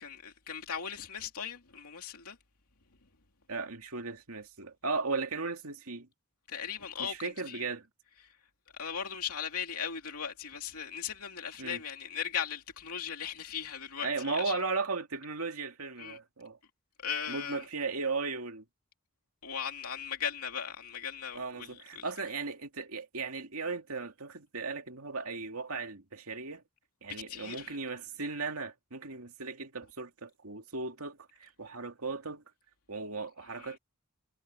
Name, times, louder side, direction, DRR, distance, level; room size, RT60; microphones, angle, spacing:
voice 1, 0.0-2.4 6.5-7.7 8.8-14.6 16.0-16.2 17.0-17.6 19.4-22.0 27.1-27.8 33.6-33.7, left 8 dB, 90° left, 2.7 m, -38 dB
voice 2, 3.5-6.1 7.0-7.9 11.6-11.8 14.0-16.6 17.3-18.6 21.3-26.6 27.0-32.4 32.9-33.8, right 4 dB, 75° right, 2.4 m, -36 dB
head